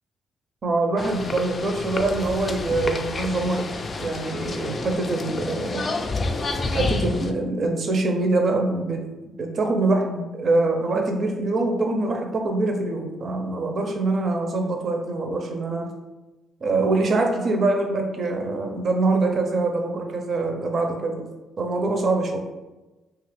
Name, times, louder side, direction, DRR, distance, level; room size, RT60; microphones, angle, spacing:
voice 1, 0.6-3.7 4.0-5.9 6.7-9.0 9.4-15.9 16.6-21.2 21.6-22.4, right 2 dB, 50° right, 3 dB, 0.5 m, -24 dB
sound 1, 1.0-7.3, left 3 dB, 40° left, 0.3 m, -29 dB
2.8 x 2.4 x 3.3 m, 1.1 s
cardioid pair, 90°, 0 cm